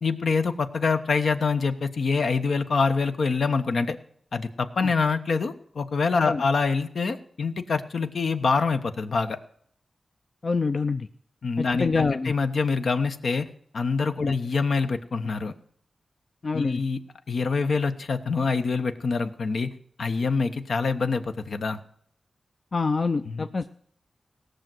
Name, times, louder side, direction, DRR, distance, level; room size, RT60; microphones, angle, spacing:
voice 1, 0.0-4.0 4.3-9.4 11.4-13.5 13.7-15.5 16.5-17.0 17.3-19.7 20.0-21.8 23.2-23.5, left 4 dB, 75° left, 8 dB, 1.0 m, -25 dB
voice 2, 10.4-11.1 11.6-12.3 14.2-14.3 16.4-16.8 22.7-23.7, left 4 dB, 50° left, 8 dB, 0.5 m, -26 dB
17.5 x 6.5 x 7.7 m, 0.63 s
wide cardioid pair, 85°, 0 cm